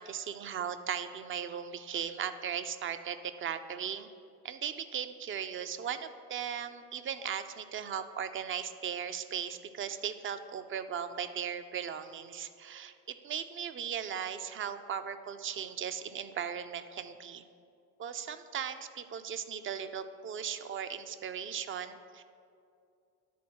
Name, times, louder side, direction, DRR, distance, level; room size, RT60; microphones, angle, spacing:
voice 1, 0.0-4.1 4.4-17.4 18.0-22.2, right 8 dB, 30° right, 10 dB, 0.5 m, -37 dB
10.0 x 4.2 x 6.1 m, 2.4 s
hypercardioid pair, 65°, 46 cm